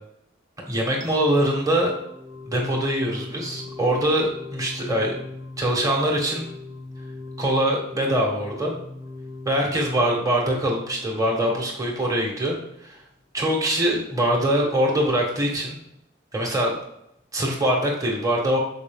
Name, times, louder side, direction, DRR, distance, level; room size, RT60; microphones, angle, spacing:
voice 1, 0.7-1.9 2.4-5.1 5.6-6.5 7.4-8.8 9.5-13.0 13.3-15.8 16.3-16.7 17.3-18.6, right 1 dB, 15° right, -1 dB, 1.2 m, -23 dB
sound 1, 1.0-11.9, left 3 dB, 40° right, 1.1 m, -40 dB
6.7 x 4.8 x 3.5 m, 0.79 s
head